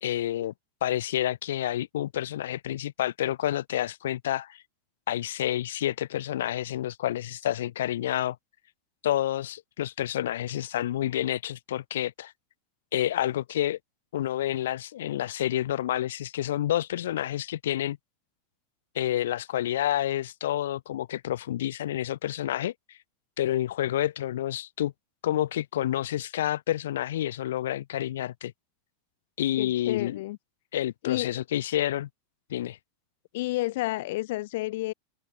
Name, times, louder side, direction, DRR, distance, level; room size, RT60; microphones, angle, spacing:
voice 1, 0.0-0.5 0.8-4.6 5.1-8.4 9.0-12.3 12.9-13.8 14.1-18.0 18.9-22.7 23.4-24.9 25.2-28.5 29.4-30.2 30.7-32.1 32.5-32.8, left 12 dB, 90° left, 0.9 m, -29 dB
voice 2, 29.6-30.4 31.0-31.3 33.3-34.9, left 18 dB, 65° left, 0.6 m, -30 dB
open air
supercardioid pair, 150°, 0 cm